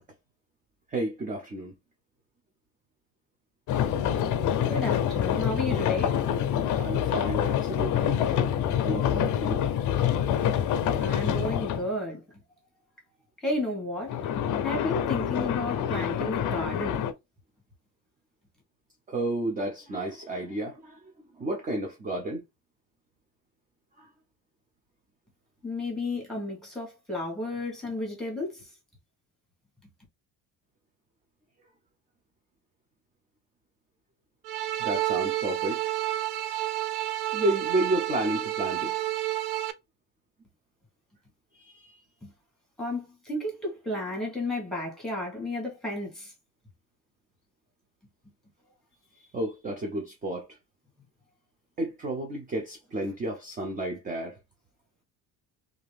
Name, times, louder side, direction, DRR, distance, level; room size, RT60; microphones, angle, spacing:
voice 1, 0.9-1.7 6.8-8.5 8.8-9.6 19.1-21.0 21.4-22.4 24.0-24.1 34.8-35.9 37.3-38.9 41.5-42.0 49.3-50.5 51.8-54.4, right 1 dB, 20° right, 0.5 m, -31 dB
sound 1, 3.7-11.9 14.1-17.1, left 9 dB, 50° left, 0.5 m, -26 dB
voice 2, 4.6-6.2 11.0-12.2 13.4-14.1 14.6-17.0 25.6-28.6 42.2-42.3 42.8-46.3, left 1 dB, ahead, 1.3 m, -32 dB
sound 2, 34.4-39.7, right 14 dB, 70° right, 0.5 m, -30 dB
2.8 x 2.5 x 3.2 m
cardioid pair, 160°, 38 cm